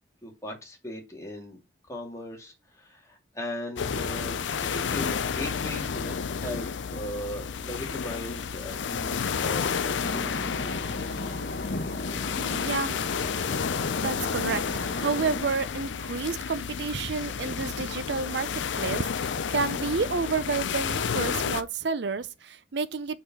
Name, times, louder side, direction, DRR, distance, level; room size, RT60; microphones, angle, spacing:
voice 1, 0.2-1.6 1.9-10.5, left 1 dB, 15° left, 2.0 m, -38 dB
sound 1, 3.8-21.6, left 6 dB, 85° left, 0.5 m, -31 dB
sound 2, 10.0-15.4, left 2 dB, 60° left, 1.1 m, -35 dB
voice 2, 12.3-13.0 14.0-23.2, right 4 dB, 70° right, 0.6 m, -30 dB
5.0 x 4.3 x 5.9 m
head